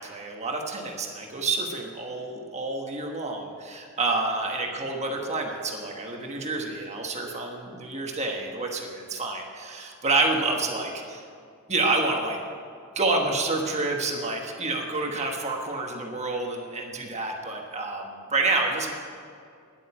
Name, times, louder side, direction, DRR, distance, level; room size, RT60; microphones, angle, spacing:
voice 1, 0.0-11.2 11.7-12.4 12.9-18.9, right 3 dB, 35° right, 1 dB, 1.3 m, -28 dB
11.0 x 8.7 x 8.7 m, 2.4 s
head